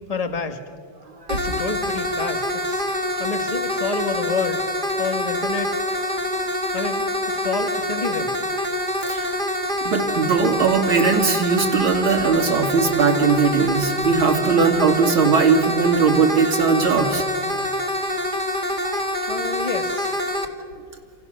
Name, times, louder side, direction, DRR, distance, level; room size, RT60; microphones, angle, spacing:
voice 1, 0.1-0.6 1.3-2.9 3.2-4.7 4.9-5.7 6.7-7.0 7.3-8.3 19.3-20.3, left 4 dB, 20° left, 7 dB, 1.5 m, -28 dB
sound 1, 1.3-20.5, left 1 dB, 25° right, 2.0 m, -25 dB
voice 2, 9.0-9.4 9.8-17.2 18.8-19.0, right 5 dB, 70° right, 3 dB, 3.3 m, -19 dB
28.5 x 28.5 x 6.7 m, 2.2 s
omnidirectional pair, 2.4 m